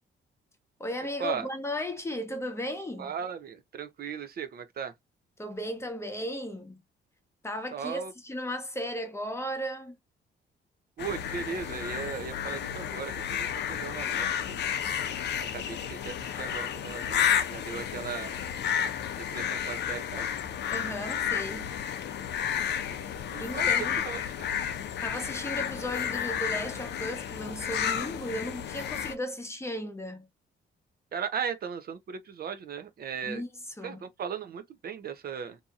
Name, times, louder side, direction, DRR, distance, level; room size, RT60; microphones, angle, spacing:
voice 1, 0.8-3.1 5.4-6.8 7.4-10.0 20.7-21.7 23.4-24.0 25.0-30.3 33.2-34.0, equal, 15° left, 0.8 m, -35 dB
voice 2, 3.0-4.9 7.7-8.1 11.0-14.6 15.4-18.4 19.3-20.3 23.3-23.7 24.1-24.5 31.1-33.4 33.8-35.6, right 7 dB, 50° right, 0.5 m, -37 dB
sound 1, 11.0-29.1, left 8 dB, 60° left, 0.5 m, -31 dB
2.7 x 2.6 x 2.3 m
cardioid pair, 90°, 20 cm